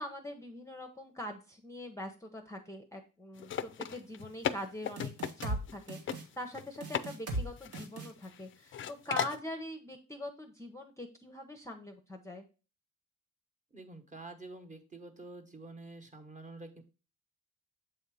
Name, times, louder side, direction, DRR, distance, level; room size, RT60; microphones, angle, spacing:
voice 1, 0.0-12.4, left 1 dB, 10° left, 4 dB, 0.7 m, -43 dB
sound 1, 3.4-5.8 6.1-6.2 6.5-7.1 7.3-8.4 8.7-9.4, left 9 dB, 40° left, 0.4 m, -36 dB
sound 2, 5.0-5.6 5.9-6.2 6.8-7.5 7.7-8.1, right 2 dB, 80° right, 1.4 m, -37 dB
voice 2, 13.7-16.8, right 2 dB, 25° right, 6 dB, 1.1 m, -48 dB
7.5 x 2.8 x 4.7 m, 0.34 s
cardioid pair, 90°, 30 cm